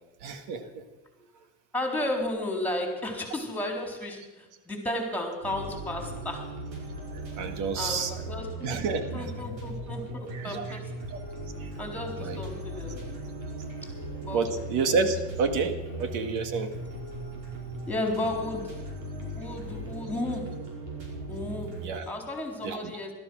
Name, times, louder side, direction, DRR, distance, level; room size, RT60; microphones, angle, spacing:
voice 1, 0.2-0.8 7.4-8.1 8.6-9.3 10.3-10.8 11.1-11.2 11.6-11.7 12.2-12.4 14.3-16.7 21.8-22.1 22.6-22.9, right 4 dB, 65° right, 8 dB, 1.9 m, -29 dB
voice 2, 1.7-6.6 7.7-8.8 9.1-10.9 11.8-13.0 13.8-13.9 14.2-14.6 15.0-15.1 17.9-18.8 19.1-20.6 21.3-21.8 22.1-23.1, left 1 dB, 5° left, 2 dB, 3.8 m, -33 dB
sound 1, 5.4-22.0, right 2 dB, 90° right, 5.2 m, -38 dB
17.0 x 13.0 x 6.3 m, 1.1 s
supercardioid pair, 115°, 34 cm